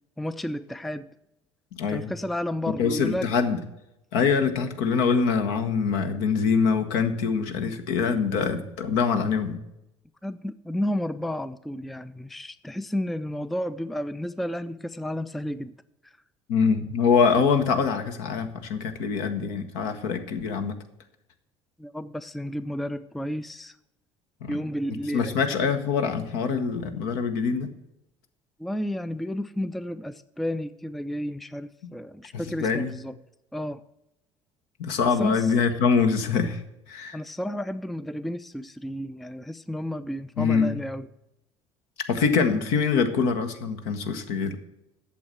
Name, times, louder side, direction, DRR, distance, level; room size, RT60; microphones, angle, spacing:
voice 1, 0.2-1.1 1.9-3.3 10.2-15.7 16.0-16.1 21.8-23.8 24.5-25.4 28.6-33.2 33.5-33.8 35.2-35.5 37.1-41.1, equal, ahead, 15 dB, 0.4 m, -32 dB
voice 2, 1.8-2.1 2.8-3.6 4.1-9.6 16.5-20.7 24.4-24.6 25.1-27.7 32.6-33.0 34.8-36.6 36.9-37.2 40.4-40.8 42.1-44.6, left 5 dB, 65° left, 7 dB, 1.1 m, -24 dB
8.4 x 6.9 x 7.9 m, 0.89 s
figure-of-eight pair, 60°, 15 cm